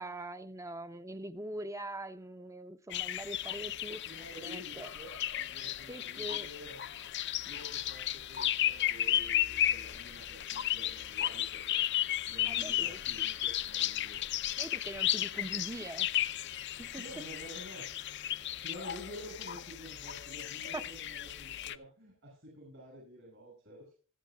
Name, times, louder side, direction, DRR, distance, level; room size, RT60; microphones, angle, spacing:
voice 1, 0.0-4.0 4.4-4.9 5.9-6.5 12.5-13.0 14.6-16.1 16.8-17.0 20.7-20.8, right 1 dB, 15° right, 0.7 m, -42 dB
sound 1, 2.9-21.8, left 12 dB, 55° left, 0.6 m, -34 dB
voice 2, 4.0-5.1 5.4-6.8 7.5-11.8 12.2-14.2 17.0-18.3 18.6-23.9, equal, 65° right, 6.0 m, -50 dB
25.5 x 8.8 x 2.3 m
head